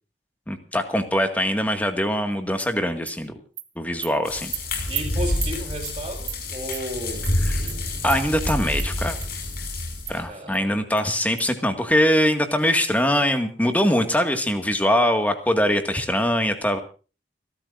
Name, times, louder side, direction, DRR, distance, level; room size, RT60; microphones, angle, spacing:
voice 1, 0.5-3.3 3.8-4.5 8.0-9.2 10.1-16.8, equal, 10° left, 6 dB, 1.9 m, -22 dB
Animal, 2.6-2.7 3.1-3.2 3.6-3.7 4.0-4.1 4.5-4.6 4.9-5.0 5.4-5.5 5.8-6.0 6.3-6.4 6.7-6.8 7.2-7.4 7.7-7.8 8.1-8.2 8.5-8.9 9.2-9.3 9.6-9.7 10.1-10.2 10.5-10.6 11.0-11.1 11.4-11.5, right 15 dB, 65° right, 1.7 m, -33 dB
sound 1, 4.2-10.2, left 1 dB, 55° left, 5.8 m, -28 dB
voice 2, 4.9-7.3 10.3-10.9, right 1 dB, 30° right, -1 dB, 6.5 m, -33 dB
30.0 x 13.0 x 2.6 m, 0.36 s
head